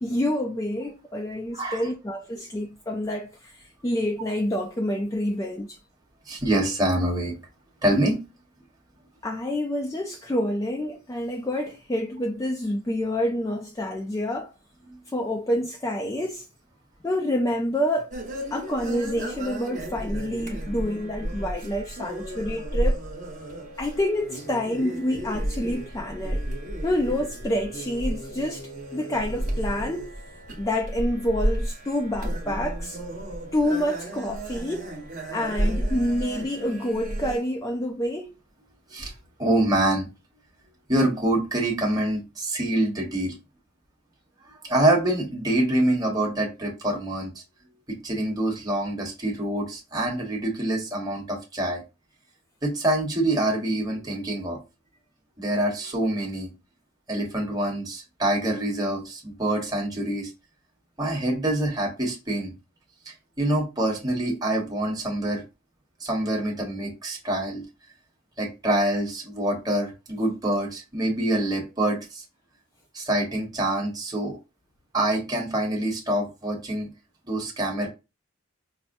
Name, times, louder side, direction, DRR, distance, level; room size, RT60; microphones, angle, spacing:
voice 1, 0.0-3.5 3.8-5.8 9.2-14.5 15.1-16.4 17.0-18.1 18.5-23.0 23.8-26.4 26.8-30.1 30.6-33.0 33.5-34.9 35.3-38.3, left 1 dB, 15° left, 0.3 m, -28 dB
voice 2, 1.5-1.9 6.3-7.3 7.8-8.2 14.9-15.0 38.9-39.1 39.4-40.1 40.9-43.3 44.5-47.4 48.0-51.8 52.6-54.6 55.4-56.5 57.1-60.3 61.0-62.5 63.0-65.4 66.0-67.6 68.4-72.2 72.9-74.4 74.9-76.9 77.2-77.9, right 1 dB, 20° right, 1.1 m, -26 dB
sound 1, 18.1-37.4, right 1 dB, 40° right, 1.1 m, -32 dB
5.5 x 2.0 x 2.6 m
head